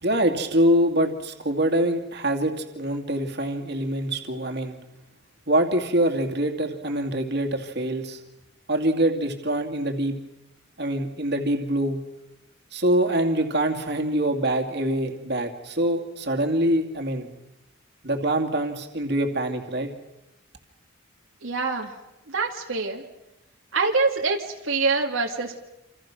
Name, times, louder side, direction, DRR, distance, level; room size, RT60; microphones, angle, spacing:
voice 1, 0.0-4.8 5.5-8.2 8.7-10.2 10.8-12.0 12.7-17.3 18.0-19.9, right 1 dB, 55° right, 5 dB, 2.6 m, -24 dB
voice 2, 21.4-21.9 22.3-23.0 23.7-25.6, right 4 dB, 75° right, 1 dB, 2.2 m, -25 dB
28.0 x 27.5 x 6.2 m, 0.93 s
head